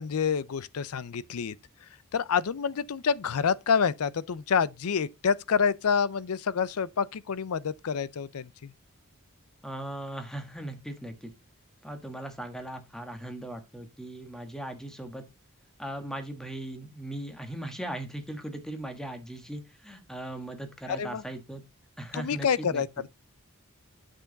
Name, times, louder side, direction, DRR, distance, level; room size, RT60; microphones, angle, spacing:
voice 1, 0.0-1.6 2.1-8.7 20.9-21.2 22.1-23.1, left 6 dB, 80° left, 0.5 m, -28 dB
voice 2, 9.6-11.3 11.8-15.2 15.8-21.6 22.0-22.8, right 1 dB, ahead, 1.3 m, -38 dB
8.2 x 6.3 x 3.9 m
head